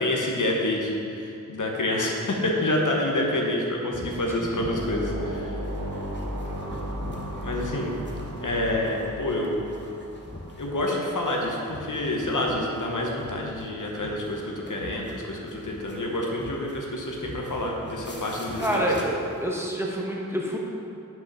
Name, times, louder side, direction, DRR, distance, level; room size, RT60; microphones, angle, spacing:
voice 1, 0.0-5.6 7.4-7.9 8.4-9.6 10.6-18.9, left 1 dB, 65° left, -1 dB, 1.1 m, -28 dB
sound 1, 3.9-19.5, left 1 dB, 35° left, 1.0 m, -44 dB
sound 2, 4.6-11.1, equal, 80° right, 1.2 m, -35 dB
voice 2, 18.6-20.6, right 1 dB, 10° right, -3 dB, 1.1 m, -27 dB
6.0 x 5.4 x 6.1 m, 2.7 s
wide cardioid pair, 75°, 33 cm